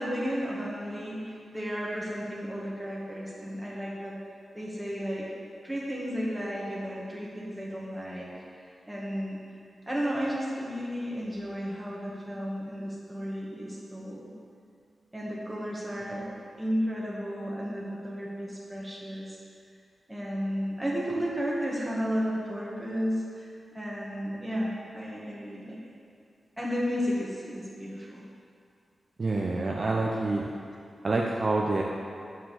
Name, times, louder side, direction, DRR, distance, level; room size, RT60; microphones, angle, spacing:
voice 1, 0.0-4.2 4.5-5.3 5.6-8.3 8.6-9.4 9.9-14.3 15.1-16.3 16.6-19.4 20.1-23.5 23.7-25.8 26.6-28.2, equal, 5° right, -5 dB, 1.8 m, -33 dB
voice 2, 29.2-30.5 31.0-31.8, right 2 dB, 35° right, -1 dB, 0.6 m, -27 dB
9.0 x 4.7 x 7.5 m, 2.4 s
wide cardioid pair, 140°, 0 cm